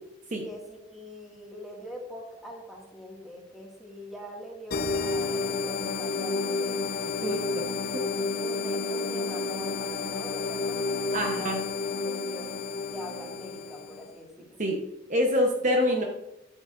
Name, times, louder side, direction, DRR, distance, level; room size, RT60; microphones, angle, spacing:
voice 1, 0.4-6.8 7.2-7.5 7.8-11.5 12.0-14.6, left 1 dB, ahead, -2 dB, 2.0 m, -43 dB
sound 1, 4.7-14.1, left 4 dB, 50° left, 0.6 m, -30 dB
voice 2, 11.1-11.6 14.6-14.8 15.1-16.0, equal, 40° right, 1 dB, 1.0 m, -25 dB
10.0 x 8.7 x 2.6 m, 0.92 s
head